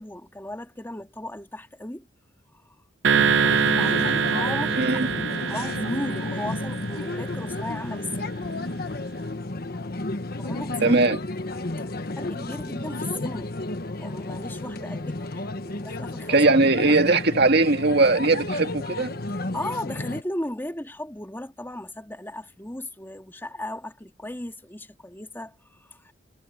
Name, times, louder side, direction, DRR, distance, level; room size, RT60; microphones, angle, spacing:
voice 1, 0.0-2.1 3.4-8.3 10.4-11.0 11.6-11.9 12.2-13.5 14.0-16.4 16.8-17.0 19.5-26.1, left 1 dB, 10° left, 2.0 m, -36 dB
sound 1, 3.0-7.5, right 6 dB, 80° right, 0.7 m, -24 dB
sound 2, 3.1-20.2, left 2 dB, 55° left, 1.3 m, -32 dB
voice 2, 4.8-5.1 10.8-11.2 16.3-19.1, right 3 dB, 60° right, 1.9 m, -20 dB
head